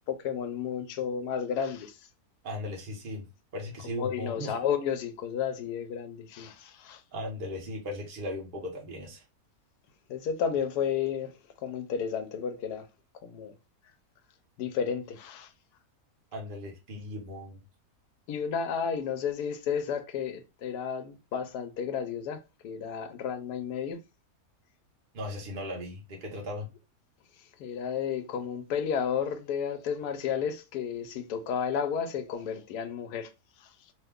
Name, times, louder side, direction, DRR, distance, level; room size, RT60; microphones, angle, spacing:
voice 1, 0.1-1.9 4.0-7.0 10.1-11.4 11.6-12.9 13.2-13.5 14.6-15.5 18.3-24.0 27.6-33.3, left 7 dB, 90° left, 1.1 m, -32 dB
voice 2, 2.4-3.3 3.5-4.5 7.1-9.2 16.3-17.6 25.1-26.7, left 1 dB, 45° right, 0.9 m, -37 dB
2.9 x 2.2 x 3.4 m
omnidirectional pair, 1.6 m